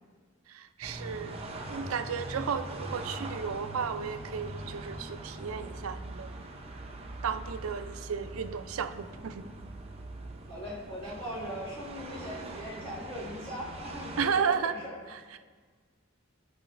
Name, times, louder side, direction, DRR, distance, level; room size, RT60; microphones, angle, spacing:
voice 1, 0.5-1.4 1.7-6.3 7.2-9.5 14.2-14.8 15.1-15.4, right 6 dB, 80° right, 9 dB, 0.5 m, -33 dB
sound 1, 0.8-14.3, right 2 dB, 30° right, 0.6 m, -42 dB
voice 2, 10.5-15.0, equal, 25° left, -7 dB, 2.2 m, -40 dB
13.5 x 5.6 x 2.6 m, 1.6 s
head